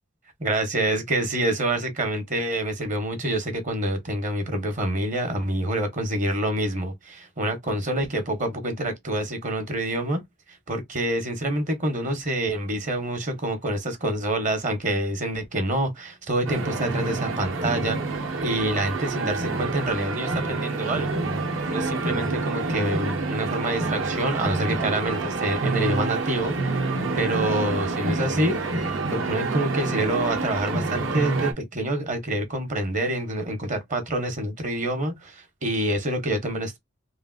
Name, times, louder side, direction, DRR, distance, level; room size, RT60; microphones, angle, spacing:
voice 1, 0.4-10.2 10.7-18.0 18.4-21.2 21.7-26.7 27.1-28.6 29.0-36.8, right 1 dB, 40° right, 0.8 m, -27 dB
sound 1, 16.5-31.5, right 3 dB, 65° right, 0.8 m, -27 dB
3.1 x 2.4 x 2.4 m
head